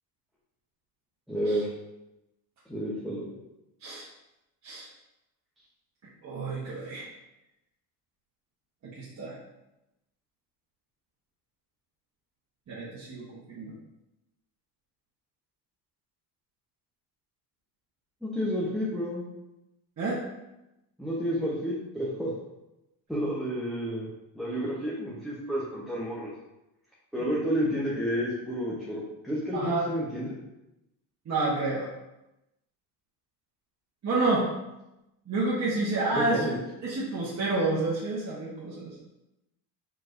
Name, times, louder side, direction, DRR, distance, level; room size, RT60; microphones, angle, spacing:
voice 1, 1.3-1.7 2.7-3.3 18.2-19.3 21.0-22.3 23.1-24.1 24.3-26.3 27.1-30.4 36.1-36.6, equal, ahead, -7 dB, 0.9 m, -30 dB
voice 2, 6.2-7.1 8.8-9.3 12.7-13.7 20.0-20.2 29.5-29.9 31.3-31.9 34.0-34.5 35.3-36.4 36.8-38.9, right 2 dB, 35° right, -7 dB, 1.2 m, -29 dB
4.5 x 4.4 x 2.6 m, 0.94 s
cardioid pair, 110°, 50 cm